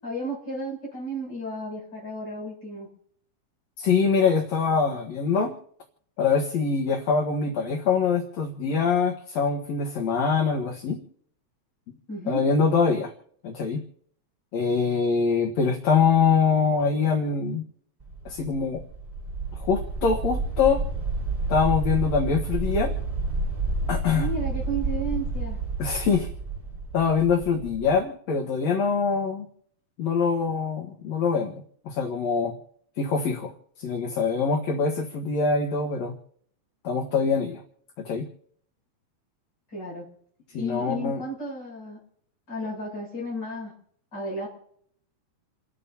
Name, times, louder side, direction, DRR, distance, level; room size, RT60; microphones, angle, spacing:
voice 1, 0.0-2.9 12.1-12.4 24.1-25.6 39.7-40.0 40.5-42.0 42.5-43.7 44.1-44.5, right 1 dB, 35° left, -3 dB, 8.4 m, -33 dB
voice 2, 3.8-5.5 6.2-11.0 12.3-13.1 13.4-13.8 14.5-17.6 18.3-18.8 19.6-20.8 21.5-22.9 23.9-24.3 25.8-26.3 26.9-29.5 30.0-32.5 33.0-33.5 33.8-36.1 36.8-37.6 38.0-38.2 40.5-41.2, left 5 dB, 70° left, 2 dB, 2.6 m, -24 dB
sound 1, 18.0-28.0, right 3 dB, 10° right, 5.6 m, -30 dB
30.0 x 12.5 x 2.9 m, 0.63 s
omnidirectional pair, 3.3 m